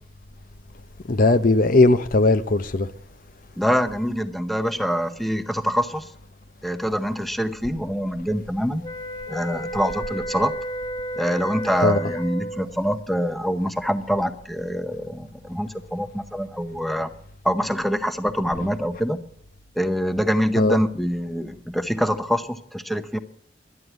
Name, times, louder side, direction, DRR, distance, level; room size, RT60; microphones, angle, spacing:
voice 1, 1.1-2.9 11.8-12.0 20.6-20.8, left 2 dB, 50° left, 0.7 m, -18 dB
voice 2, 3.6-6.1 6.6-8.8 9.3-10.5 11.2-17.1 17.4-19.2 19.8-23.2, equal, ahead, 0.7 m, -25 dB
sound 1, 8.8-12.7, right 1 dB, 35° left, 1.9 m, -32 dB
11.0 x 10.5 x 8.0 m
head